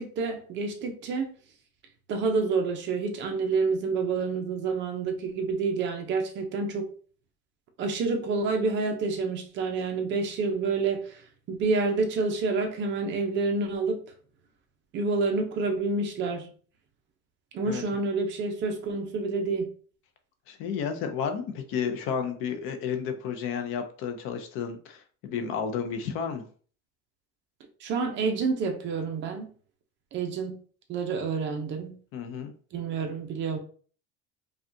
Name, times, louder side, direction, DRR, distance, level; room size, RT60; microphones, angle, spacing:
voice 1, 0.0-1.3 2.1-6.9 7.8-14.0 14.9-16.5 17.5-19.7 27.8-29.5 30.1-30.6 30.9-31.9 32.7-33.6, right 4 dB, 40° right, 4 dB, 0.7 m, -28 dB
voice 2, 20.5-26.4 32.1-32.5, left 7 dB, 45° left, 7 dB, 0.5 m, -32 dB
5.0 x 2.3 x 2.7 m, 0.43 s
cardioid pair, 170°, 29 cm